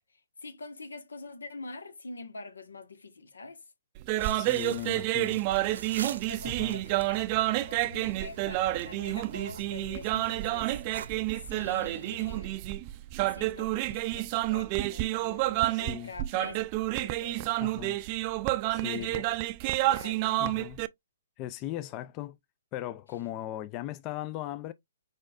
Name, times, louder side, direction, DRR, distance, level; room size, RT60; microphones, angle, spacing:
voice 1, 0.4-3.6 6.3-10.7 11.4-12.7 13.1-16.6 16.9-17.5 18.7-19.4 19.8-20.5, left 3 dB, 85° left, 1.3 m, -45 dB
sound 1, 4.0-20.9, right 17 dB, 35° right, 0.4 m, -29 dB
sound 2, 4.2-12.4, right 6 dB, 65° right, 0.7 m, -45 dB
voice 2, 4.3-5.4 6.4-6.8 15.7-16.1 17.6-18.0 18.7-19.3 20.4-20.8 21.4-22.4 22.7-24.7, left 13 dB, 30° left, 0.4 m, -38 dB
4.8 x 4.3 x 2.4 m
hypercardioid pair, 135°, 0 cm